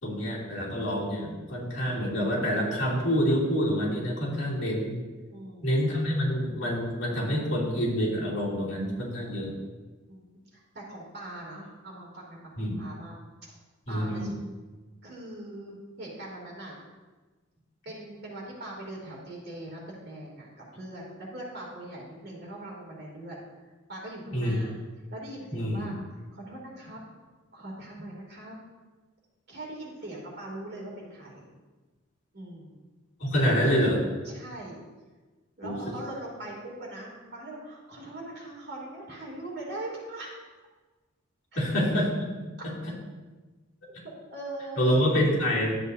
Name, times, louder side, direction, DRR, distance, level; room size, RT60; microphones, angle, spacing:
voice 1, 0.0-5.0 5.6-9.5 12.6-12.8 13.9-14.3 24.3-24.6 25.5-25.9 33.2-34.0 35.6-35.8 41.6-42.3 42.6-42.7 44.8-45.8, equal, 60° left, -6 dB, 2.9 m, -27 dB
voice 2, 5.3-5.7 10.1-13.2 13.9-14.3 15.0-16.8 17.8-20.5 20.7-23.5 23.9-24.8 25.1-25.9 26.3-27.0 27.5-28.6 29.5-31.5 32.3-32.7 34.2-34.8 35.6-40.3 41.5-41.6 44.0-45.1, right 1 dB, 50° right, -3 dB, 2.8 m, -41 dB
12.5 x 7.8 x 2.7 m, 1.3 s
head